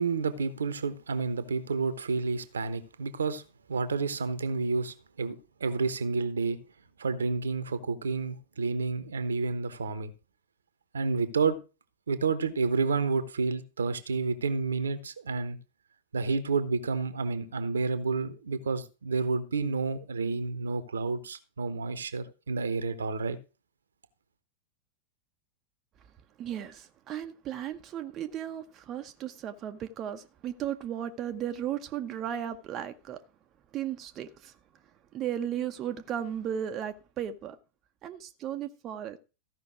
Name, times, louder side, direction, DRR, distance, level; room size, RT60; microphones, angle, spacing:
voice 1, 0.0-3.4 3.7-5.3 5.6-6.6 7.0-10.1 10.9-11.6 12.1-15.6 16.1-23.4, right 4 dB, 70° right, 1.1 m, -30 dB
voice 2, 26.4-33.2 33.7-34.5 35.1-37.6 38.0-39.2, right 10 dB, 30° right, 0.8 m, -35 dB
14.0 x 5.7 x 6.0 m
figure-of-eight pair, 90°, 0 cm